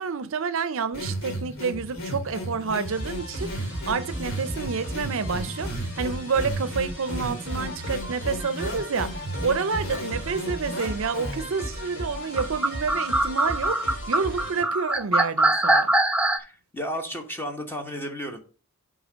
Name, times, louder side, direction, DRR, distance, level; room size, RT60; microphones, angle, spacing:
voice 1, 0.0-15.9, right 5 dB, 60° right, 0.5 m, -29 dB
sound 1, 0.9-11.6, equal, 60° left, 2.9 m, -35 dB
sound 2, 2.8-14.6, right 1 dB, 45° left, 3.3 m, -36 dB
sound 3, 12.4-16.4, right 1 dB, 5° right, 0.5 m, -22 dB
voice 2, 16.4-18.4, equal, 10° left, 1.2 m, -33 dB
7.9 x 3.9 x 5.1 m
head